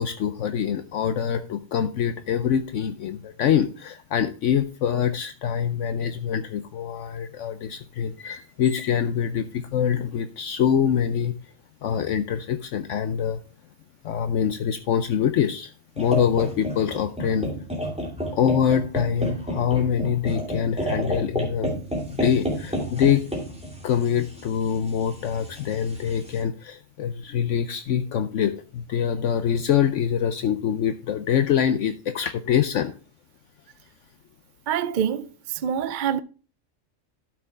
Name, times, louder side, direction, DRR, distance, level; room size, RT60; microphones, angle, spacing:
voice 1, 0.0-11.4 11.8-13.4 14.0-17.5 18.3-21.8 22.1-23.2 23.8-32.9, left 8 dB, 70° left, 0.9 m, -24 dB
sound 1, 16.0-26.4, equal, 5° right, 2.4 m, -31 dB
voice 2, 34.7-36.2, right 8 dB, 55° right, 0.5 m, -26 dB
12.5 x 6.1 x 3.5 m
omnidirectional pair, 1.4 m